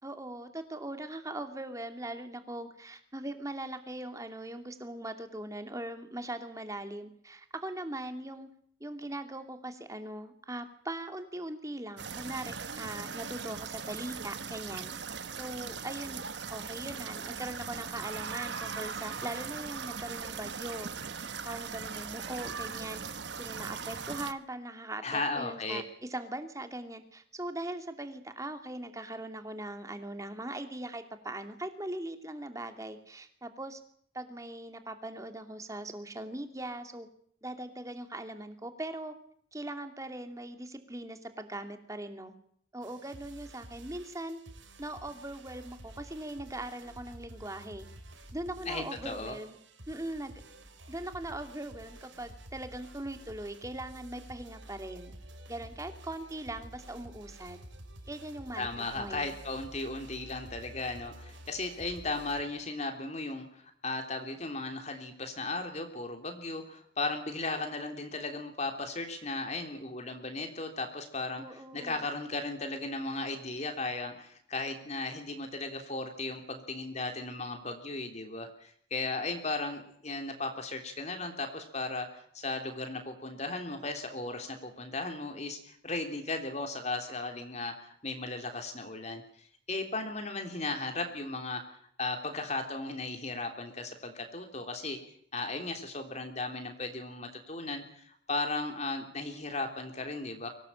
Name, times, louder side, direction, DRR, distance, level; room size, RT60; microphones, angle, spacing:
voice 1, 0.0-8.5 8.8-16.2 16.5-20.9 21.4-23.0 23.3-33.8 34.1-37.1 37.4-39.1 39.5-42.3 42.7-44.4 44.8-47.9 48.3-49.6 49.9-50.3 50.9-55.1 55.5-57.6 58.1-59.3 71.4-72.1, right 1 dB, 15° right, 7 dB, 2.6 m, -40 dB
sound 1, 12.0-24.3, right 6 dB, 60° right, 1.3 m, -39 dB
voice 2, 25.0-25.8 48.6-49.3 58.6-95.0 95.3-100.5, left 3 dB, 35° left, 5 dB, 3.3 m, -36 dB
sound 2, 42.8-62.4, right 1 dB, 80° right, 5.5 m, -50 dB
24.5 x 18.5 x 8.8 m, 0.64 s
head